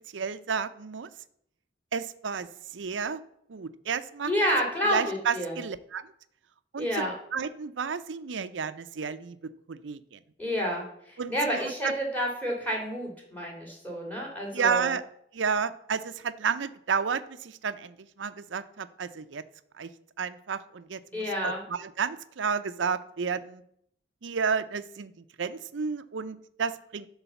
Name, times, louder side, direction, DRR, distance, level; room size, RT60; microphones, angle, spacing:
voice 1, 0.1-1.1 1.9-3.2 3.5-4.3 4.9-6.0 6.7-10.2 11.2-11.9 14.5-15.0 15.3-19.4 19.8-19.9 20.2-23.6 24.2-27.1, right 6 dB, 85° right, 13 dB, 0.6 m, -31 dB
voice 2, 4.2-5.6 6.8-7.1 10.4-14.9 21.1-21.6, equal, 10° left, -1 dB, 2.6 m, -29 dB
11.0 x 4.0 x 6.9 m, 0.72 s
head